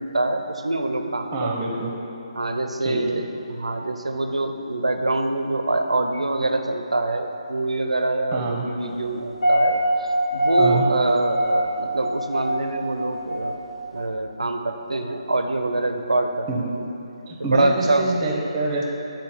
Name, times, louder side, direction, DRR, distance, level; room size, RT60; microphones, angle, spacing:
voice 1, 0.0-1.3 2.4-3.2 3.5-9.8 10.3-13.6 13.9-16.5 17.4-18.1, right 2 dB, 85° right, 6 dB, 0.5 m, -24 dB
voice 2, 1.3-1.9 2.8-3.2 8.3-8.7 10.6-10.9 16.5-16.6 17.3-18.9, right 2 dB, 20° right, -1 dB, 0.9 m, -26 dB
sound 1, 9.2-14.0, right 1 dB, 75° left, 1.4 m, -24 dB
8.6 x 3.9 x 4.4 m, 3.0 s
figure-of-eight pair, 150°, 3 cm